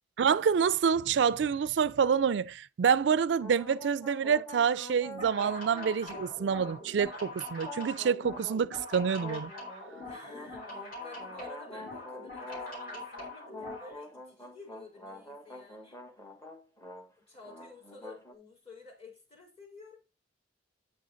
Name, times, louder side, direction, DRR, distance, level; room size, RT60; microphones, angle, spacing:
voice 1, 0.2-9.5, right 7 dB, 75° right, 0.4 m, -27 dB
sound 1, 3.4-7.2 7.6-8.7 9.2-13.1 13.5-17.1 17.3-18.3, left 1 dB, 15° left, 1.2 m, -47 dB
sound 2, 5.0-13.9, left 2 dB, 55° left, 4.3 m, -43 dB
voice 2, 10.0-16.0 17.1-20.0, left 3 dB, 35° left, 4.1 m, -51 dB
8.8 x 6.2 x 3.9 m
head